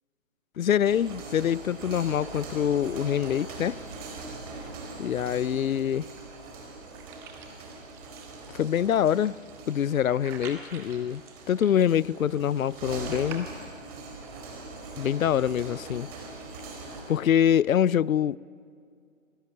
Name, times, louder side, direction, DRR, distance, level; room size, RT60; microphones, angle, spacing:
voice 1, 0.6-3.8 5.0-6.1 8.5-9.4 9.7-11.2 11.5-13.5 15.0-16.1 17.1-18.4, left 9 dB, 75° left, 0.5 m, -25 dB
sound 1, 0.7-17.2, right 3 dB, 25° right, 4.1 m, -42 dB
sound 2, 4.4-13.4, right 7 dB, 5° right, 0.8 m, -49 dB
27.5 x 16.0 x 7.7 m
figure-of-eight pair, 140°, 41 cm